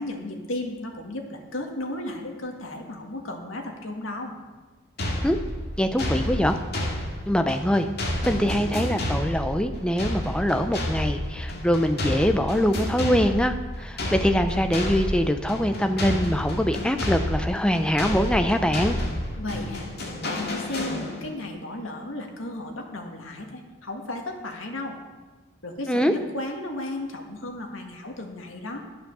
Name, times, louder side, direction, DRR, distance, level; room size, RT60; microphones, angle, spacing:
voice 1, 0.0-4.4 19.4-19.9 20.2-25.0 25.6-28.8, left 1 dB, 80° left, 2 dB, 1.9 m, -34 dB
sound 1, 5.0-21.4, left 1 dB, 50° left, 2.3 m, -30 dB
voice 2, 5.8-6.6 7.3-7.9 8.2-19.0 25.9-26.1, equal, 5° left, 7 dB, 0.6 m, -23 dB
12.0 x 8.0 x 6.8 m, 1.3 s
head